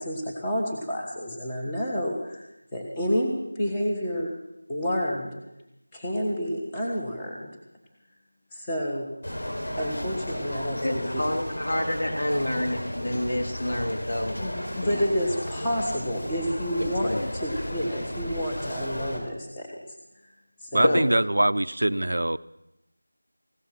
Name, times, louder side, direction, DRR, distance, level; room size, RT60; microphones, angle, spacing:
voice 1, 0.0-2.4 2.7-4.3 4.7-5.3 5.9-7.5 8.5-9.0 9.8-11.2 14.4-19.8 20.6-21.0, equal, 5° left, -4 dB, 1.5 m, -29 dB
sound 1, 9.2-19.2, equal, 70° left, 5.0 m, -34 dB
voice 2, 10.8-14.4 14.8-15.0 16.8-17.3 20.8-21.0, left 1 dB, 55° left, 3 dB, 2.6 m, -28 dB
voice 3, 20.7-22.4, right 1 dB, 70° right, 16 dB, 0.6 m, -23 dB
16.5 x 12.5 x 5.9 m, 0.90 s
figure-of-eight pair, 180°, 0 cm